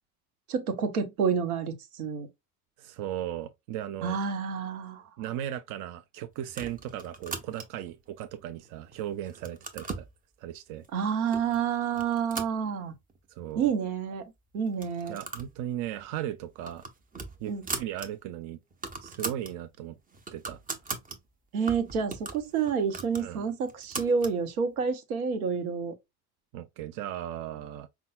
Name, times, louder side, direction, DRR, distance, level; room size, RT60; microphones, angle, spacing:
voice 1, 0.5-2.3 4.0-5.0 10.9-12.9 13.6-14.2 14.5-15.2 17.5-17.6 21.5-25.9, right 6 dB, 75° right, 1.0 m, -29 dB
voice 2, 2.8-4.2 5.2-10.1 10.4-10.9 13.3-13.7 15.1-16.9 17.4-18.6 19.0-20.0 20.3-20.6 23.2-23.5 26.5-27.9, right 12 dB, 45° right, 0.5 m, -37 dB
sound 1, 6.5-7.9 8.5-9.0 9.3-10.1 10.8-10.9 11.3-11.6 11.9-13.2 13.5-13.6 13.8-13.9 14.7-15.5 15.9-16.0 16.4-18.1 18.4-18.5 18.7-19.5 19.9-21.2 21.7-24.4, right 4 dB, 20° right, 0.8 m, -39 dB
5.3 x 2.3 x 2.4 m
figure-of-eight pair, 60°, 44 cm